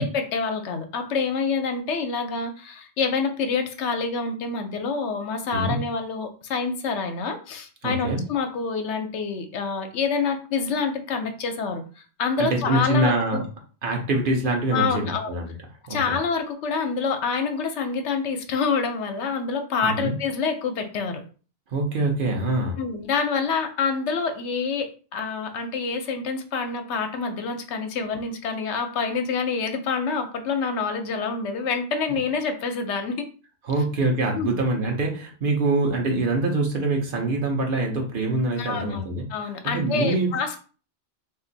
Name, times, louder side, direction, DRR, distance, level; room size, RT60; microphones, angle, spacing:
voice 1, 0.0-13.4 14.7-15.4 15.9-21.2 22.8-33.3 34.4-34.6 38.6-39.0 39.3-40.6, left 5 dB, 75° left, 6 dB, 0.9 m, -27 dB
voice 2, 7.8-8.2 12.4-13.5 13.8-15.5 15.9-16.2 19.8-20.1 21.7-22.8 33.6-39.2 39.6-40.6, right 2 dB, 55° right, 1 dB, 0.8 m, -24 dB
2.6 x 2.4 x 3.8 m, 0.38 s
omnidirectional pair, 1.2 m